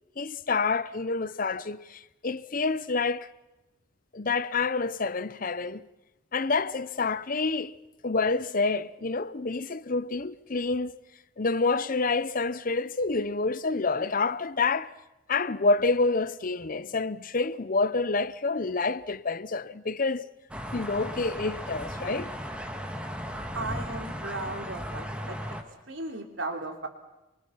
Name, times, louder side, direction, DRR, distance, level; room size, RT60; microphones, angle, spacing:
voice 1, 0.2-3.3 4.1-5.9 6.3-7.8 8.0-10.9 11.4-14.9 15.3-20.3 20.7-22.3, left 3 dB, 45° left, 0.7 m, -28 dB
sound 1, 20.5-25.6, equal, 5° right, 1.8 m, -36 dB
voice 2, 23.5-25.4 25.9-26.9, right 2 dB, 65° right, 3.2 m, -36 dB
27.5 x 23.5 x 5.8 m
head